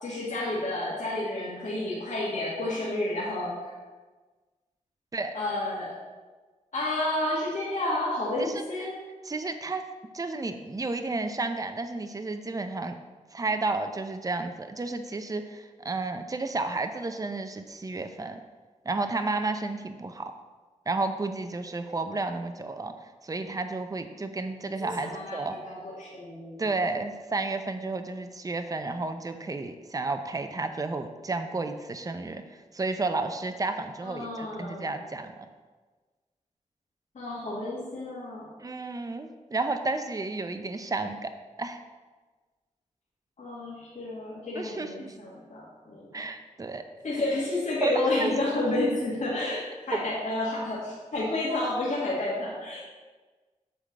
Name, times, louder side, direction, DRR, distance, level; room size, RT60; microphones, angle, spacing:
voice 1, 0.0-3.7 5.3-5.9 6.7-8.9 24.8-26.6 34.0-34.9 37.2-38.5 43.4-46.2 47.0-52.8, left 2 dB, 70° left, -7 dB, 1.9 m, -30 dB
voice 2, 8.4-8.9 9.2-9.8 10.1-13.0 13.3-18.4 18.8-20.3 20.9-22.9 23.2-25.6 26.6-32.4 32.7-35.3 38.6-41.3 41.6-41.8 44.5-45.1 46.1-46.8 47.8-48.3, right 3 dB, 25° right, 7 dB, 0.7 m, -32 dB
8.2 x 3.8 x 6.6 m, 1.3 s
cardioid pair, 75°, 13 cm